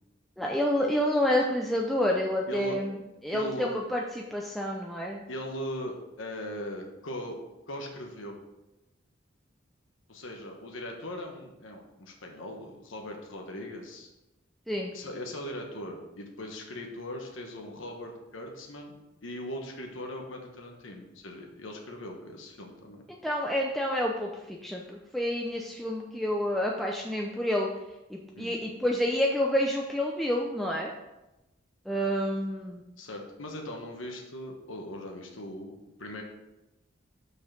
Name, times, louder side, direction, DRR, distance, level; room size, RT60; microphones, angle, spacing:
voice 1, 0.4-2.9 3.2-5.2 14.7-14.9 23.2-27.7 28.1-30.9 31.9-32.8, left 1 dB, ahead, -1 dB, 0.6 m, -28 dB
voice 2, 3.3-3.7 5.3-7.4 7.7-8.4 10.1-14.1 14.9-19.0 19.2-23.0 28.3-28.5 33.0-35.7 36.0-36.2, equal, 85° left, 1 dB, 1.2 m, -39 dB
6.5 x 5.4 x 6.2 m, 0.96 s
head